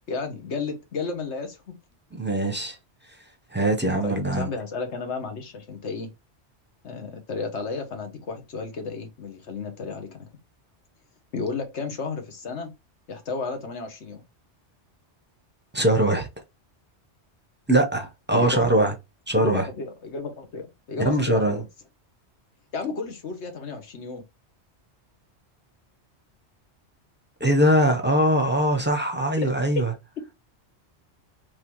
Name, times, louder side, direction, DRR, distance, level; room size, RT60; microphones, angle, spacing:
voice 1, 0.1-1.7 4.0-6.1 6.8-10.3 11.3-12.7 13.1-14.2 18.3-18.9 19.3-21.6 22.7-24.2 29.4-29.5, left 4 dB, 80° left, 1.3 m, -32 dB
voice 2, 2.1-2.8 3.5-4.5 15.7-16.3 17.7-18.9 19.3-19.7 21.0-21.6 27.4-29.9, right 1 dB, 10° right, 0.7 m, -22 dB
3.8 x 3.2 x 3.0 m
omnidirectional pair, 1.2 m